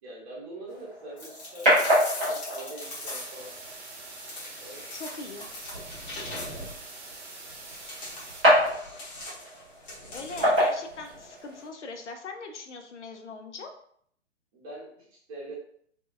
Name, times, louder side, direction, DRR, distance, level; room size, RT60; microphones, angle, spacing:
voice 1, 0.0-3.5 4.6-4.9 9.9-10.6 14.5-15.6, right 1 dB, 30° right, -4 dB, 0.8 m, -44 dB
sound 1, 0.7-11.7, equal, 5° right, 0.3 m, -29 dB
sound 2, 1.2-3.5 4.2-6.8 7.7-10.7, left 2 dB, 35° left, 1.0 m, -41 dB
sound 3, 2.8-8.4, right 3 dB, 60° right, 0.7 m, -44 dB
voice 2, 4.9-5.5 10.1-13.7, left 3 dB, 70° left, 5 dB, 0.6 m, -40 dB
2.7 x 2.3 x 2.4 m, 0.65 s
figure-of-eight pair, 120°, 36 cm